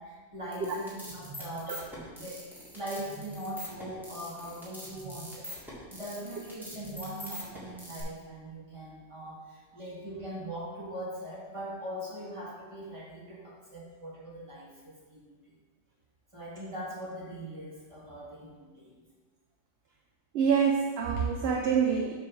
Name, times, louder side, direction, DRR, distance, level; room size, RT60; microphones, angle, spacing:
voice 1, 0.0-15.6 16.3-19.0, right 1 dB, 25° right, -5 dB, 1.9 m, -41 dB
sound 1, 0.5-8.0, equal, ahead, 1.8 m, -43 dB
voice 2, 20.3-22.1, right 6 dB, 65° right, 2 dB, 0.8 m, -26 dB
7.1 x 3.8 x 6.0 m, 1.4 s
omnidirectional pair, 1.3 m